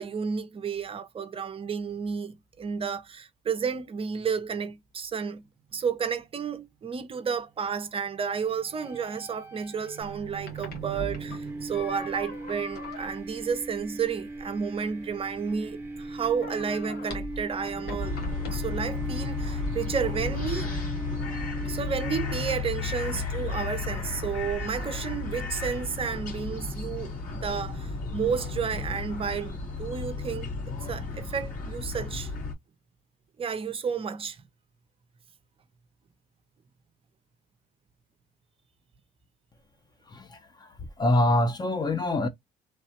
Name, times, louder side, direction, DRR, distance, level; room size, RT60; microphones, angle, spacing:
voice 1, 0.0-5.5 5.7-18.2 18.5-20.7 21.6-32.3 33.4-34.4, right 6 dB, 35° right, 0.6 m, -32 dB
sound 1, 8.6-22.6, right 2 dB, 10° right, 1.0 m, -39 dB
sound 2, 10.0-19.5, left 2 dB, 70° left, 1.4 m, -42 dB
sound 3, 18.0-32.5, left 4 dB, 50° left, 2.0 m, -33 dB
voice 2, 40.1-42.3, left 1 dB, 25° left, 0.5 m, -25 dB
3.2 x 2.2 x 2.8 m
cardioid pair, 110°, 17 cm